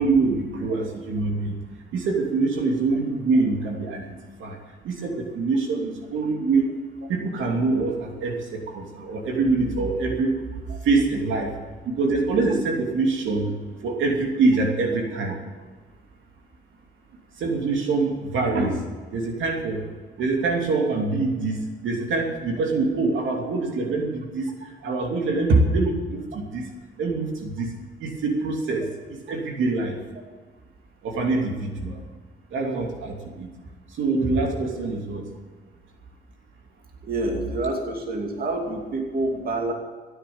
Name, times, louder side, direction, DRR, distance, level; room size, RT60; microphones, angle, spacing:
voice 1, 0.0-1.6 1.9-4.1 4.4-4.6 4.8-6.7 7.1-10.3 10.8-11.5 11.8-13.5 13.8-15.4 17.4-18.8 19.1-19.8 20.2-26.7 27.0-27.7 28.0-30.0 31.0-32.0 32.5-33.5 33.9-35.2, right 3 dB, 75° right, 1 dB, 2.9 m, -24 dB
voice 2, 37.0-39.7, right 2 dB, 50° right, 2 dB, 2.7 m, -27 dB
15.0 x 9.8 x 7.1 m, 1.4 s
cardioid pair, 90°, 20 cm